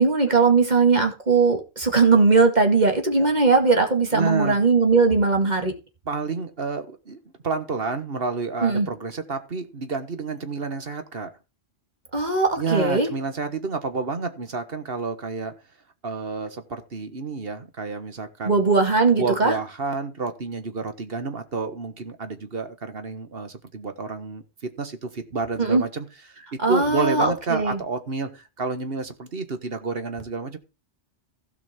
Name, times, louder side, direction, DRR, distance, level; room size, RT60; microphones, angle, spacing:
voice 1, 0.0-5.7 8.6-8.9 12.1-13.1 18.4-19.5 25.6-25.8 26.6-27.8, right 4 dB, 40° right, 5 dB, 2.2 m, -19 dB
voice 2, 4.1-4.6 6.1-11.3 12.6-15.5 16.0-18.6 19.2-30.6, right 4 dB, 60° right, 9 dB, 1.7 m, -30 dB
16.0 x 5.9 x 4.4 m, 0.30 s
omnidirectional pair, 1.1 m